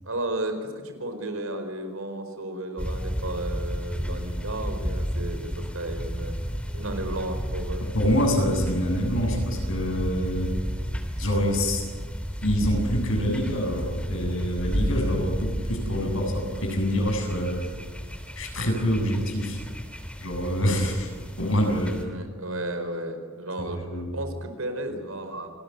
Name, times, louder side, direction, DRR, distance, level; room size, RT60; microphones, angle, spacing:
voice 1, 0.0-6.4 6.7-7.9 21.7-25.5, right 1 dB, 85° right, 7 dB, 4.8 m, -33 dB
sound 1, 2.8-22.0, equal, 5° left, 3.1 m, -32 dB
voice 2, 7.8-10.5 11.2-11.8 12.4-17.6 18.4-19.6 20.2-21.1 21.4-22.0 23.6-24.1, equal, 70° left, 3 dB, 7.5 m, -26 dB
28.0 x 20.0 x 9.5 m, 1.5 s
head